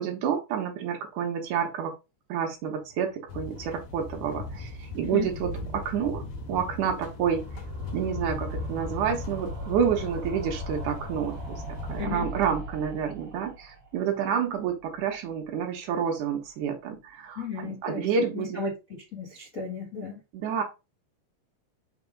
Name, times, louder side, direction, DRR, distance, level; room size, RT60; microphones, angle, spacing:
voice 1, 0.0-1.9 2.3-6.2 6.5-7.4 7.9-11.6 11.9-18.6 20.3-20.6, right 7 dB, 85° right, 3 dB, 1.7 m, -29 dB
sound 1, 2.6-15.6 15.9-16.0 16.2-16.3 16.5-16.6, right 3 dB, 45° right, 1.8 m, -44 dB
sound 2, 3.3-12.1, left 3 dB, 65° left, 2.6 m, -37 dB
voice 2, 12.0-12.3 17.3-18.1 18.3-20.2, left 4 dB, 85° left, -3 dB, 0.7 m, -34 dB
6.0 x 3.5 x 5.1 m, 0.27 s
omnidirectional pair, 5.0 m